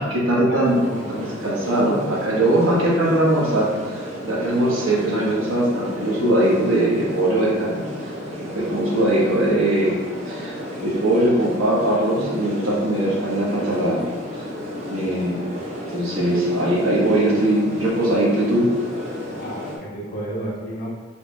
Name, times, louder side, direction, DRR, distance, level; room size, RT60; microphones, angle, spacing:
voice 1, 0.0-0.8 1.1-7.8 8.4-9.9 10.3-10.5 10.8-14.0 14.9-15.4 15.9-18.7, right 1 dB, 85° right, -5 dB, 1.0 m, -20 dB
sound 1, 0.6-19.8, equal, 35° right, 0.6 m, -33 dB
voice 2, 19.4-20.9, right 1 dB, 45° left, -4 dB, 0.8 m, -32 dB
4.4 x 2.8 x 2.2 m, 1.4 s
head